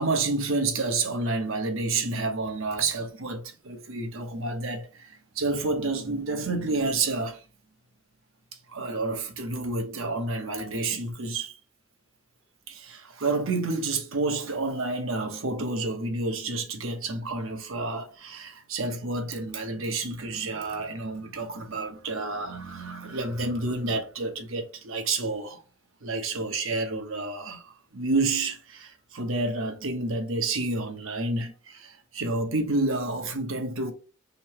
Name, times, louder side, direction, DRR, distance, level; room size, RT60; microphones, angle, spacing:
voice 1, 0.0-7.4 8.7-11.5 12.7-25.6 26.0-33.9, right 3 dB, 75° right, 1.0 m, -29 dB
5.3 x 2.1 x 4.6 m
head